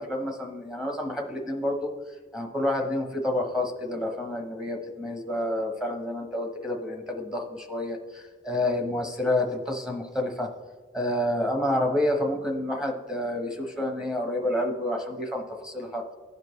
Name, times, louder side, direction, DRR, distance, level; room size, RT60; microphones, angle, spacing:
voice 1, 0.0-1.9 2.3-10.5 10.9-16.0, left 1 dB, 5° right, 1 dB, 1.0 m, -29 dB
15.5 x 5.2 x 3.1 m, 1.5 s
head